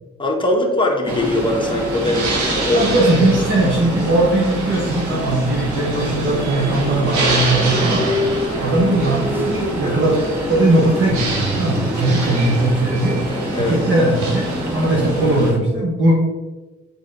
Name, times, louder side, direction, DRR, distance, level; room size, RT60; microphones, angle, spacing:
voice 1, 0.2-2.9 13.5-13.8, left 1 dB, 15° left, 0 dB, 1.5 m, -20 dB
sound 1, 1.0-15.6, equal, 5° right, 0.9 m, -26 dB
sound 2, 1.1-15.5, right 2 dB, 75° right, 1.8 m, -27 dB
voice 2, 2.7-8.1 8.6-10.1 10.5-13.2 13.5-16.2, right 2 dB, 40° right, -3 dB, 1.4 m, -18 dB
6.6 x 5.0 x 3.9 m, 1.2 s
cardioid pair, 90°, 30 cm